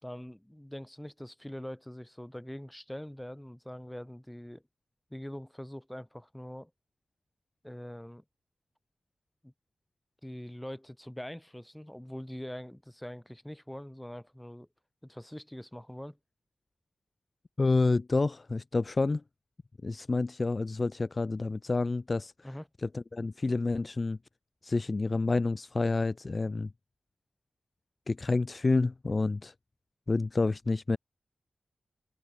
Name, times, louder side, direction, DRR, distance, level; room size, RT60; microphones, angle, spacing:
voice 1, 0.0-4.6 5.1-6.7 7.6-8.2 9.4-9.5 10.2-14.7 15.0-16.2 22.4-22.7, equal, 5° left, 3.4 m, -43 dB
voice 2, 17.6-19.2 19.8-22.5 22.8-24.2 24.6-26.7 28.1-29.5 30.1-31.0, left 3 dB, 35° left, 2.0 m, -29 dB
wide cardioid pair, 140°, 0 cm